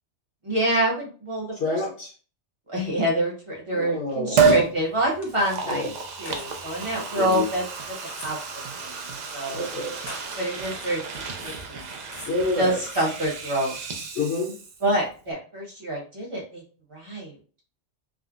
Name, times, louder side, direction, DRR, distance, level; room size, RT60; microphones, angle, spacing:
voice 1, 0.4-1.8 2.7-5.9 6.2-7.6 8.2-8.4 8.8-9.1 9.3-9.6 10.4-11.9 12.6-13.8 14.8-16.6 16.9-17.4, right 1 dB, 30° right, -3 dB, 0.9 m, -26 dB
voice 2, 1.5-2.1 3.7-4.7 5.6-5.9 7.1-7.5 9.5-10.0 12.3-12.8 14.2-14.5, left 3 dB, 70° left, -4 dB, 1.0 m, -28 dB
Liquid, 4.4-4.7 5.3-14.9 15.2-15.3, right 5 dB, 55° right, 0.5 m, -29 dB
sound 1, 4.8-13.9, left 1 dB, 25° left, 0.7 m, -47 dB
3.7 x 2.0 x 2.4 m, 0.39 s
omnidirectional pair, 1.2 m